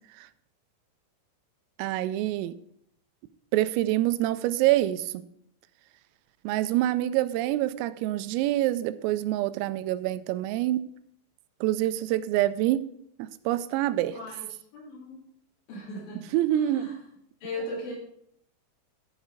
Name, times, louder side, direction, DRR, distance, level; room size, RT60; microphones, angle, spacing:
voice 1, 1.8-2.5 3.5-5.2 6.4-10.9 11.6-12.8 13.2-14.2 16.3-17.0, right 14 dB, 90° right, 14 dB, 3.2 m, -26 dB
voice 2, 14.1-14.5 14.7-15.2 15.7-16.3 16.5-17.0 17.4-17.9, left 1 dB, 65° left, -5 dB, 5.7 m, -37 dB
11.0 x 7.3 x 4.9 m, 0.70 s
omnidirectional pair, 5.9 m